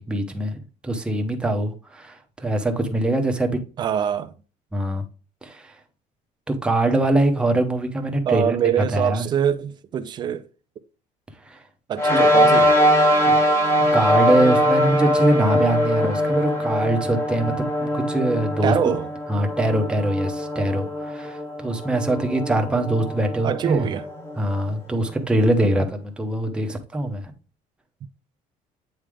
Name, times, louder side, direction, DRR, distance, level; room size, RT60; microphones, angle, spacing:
voice 1, 0.0-3.6 4.7-5.0 5.4-5.7 6.5-8.6 8.9-9.2 11.5-11.6 13.3-13.4 13.9-18.7 19.3-23.9 24.4-27.3, right 1 dB, 5° right, 0.8 m, -23 dB
voice 2, 3.8-4.3 8.2-10.4 11.9-12.8 18.6-19.1 23.4-24.1 25.6-25.8, right 9 dB, 30° right, 0.5 m, -24 dB
sound 1, 12.0-24.7, equal, 15° left, 1.2 m, -22 dB
8.7 x 3.3 x 3.5 m
cardioid pair, 170°, 15 cm